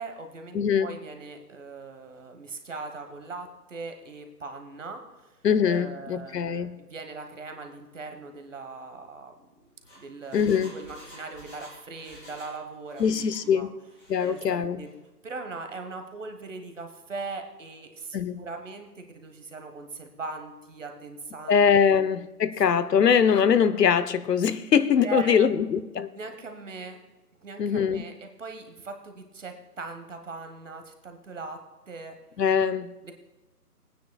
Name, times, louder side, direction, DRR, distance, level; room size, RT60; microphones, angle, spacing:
voice 1, 0.0-5.4 5.6-9.3 9.9-10.4 10.7-13.7 14.2-14.9 15.2-22.1 25.0-25.7 26.2-27.0 27.4-31.6 31.9-32.2 33.0-33.1, right 4 dB, 50° right, 1.3 m, -40 dB
voice 2, 0.5-0.9 5.4-6.8 10.3-10.7 13.0-13.7 14.1-14.8 18.1-18.4 21.5-26.1 27.6-28.0 32.4-32.9, left 7 dB, 85° left, 0.8 m, -22 dB
Engine, 9.6-12.6 12.8-13.4 13.9-14.4 14.8-14.9, equal, 15° left, 3.5 m, -49 dB
21.0 x 9.3 x 2.2 m
hypercardioid pair, 170°, 48 cm